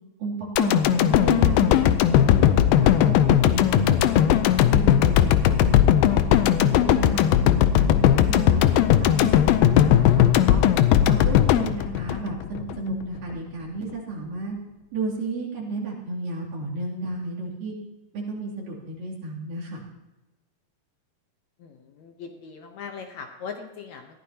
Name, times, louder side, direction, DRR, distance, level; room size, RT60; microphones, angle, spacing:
voice 1, 0.2-4.2 4.7-5.8 6.1-10.6 11.0-14.6 14.9-17.7 18.1-19.8, right 2 dB, 75° right, -4 dB, 4.5 m, -32 dB
sound 1, 0.6-12.8 13.2-13.3, left 11 dB, 85° left, 2.4 m, -18 dB
voice 2, 21.6-24.2, left 6 dB, 70° left, 4 dB, 1.9 m, -39 dB
20.5 x 14.5 x 2.9 m, 1.0 s
omnidirectional pair, 4.0 m